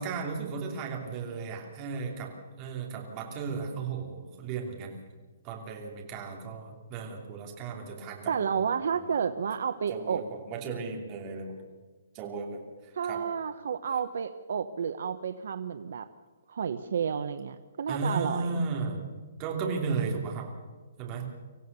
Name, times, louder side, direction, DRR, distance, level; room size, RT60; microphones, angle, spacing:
voice 1, 0.0-4.9 5.4-8.5 9.0-9.1 9.9-11.6 12.1-13.2 17.9-20.5 21.0-21.3, right 4 dB, 15° right, 0 dB, 2.9 m, -35 dB
voice 2, 8.3-10.2 12.9-16.1 16.5-18.6, right 7 dB, 55° right, 10 dB, 0.8 m, -31 dB
25.5 x 15.0 x 6.8 m, 1.4 s
hypercardioid pair, 180°, 0 cm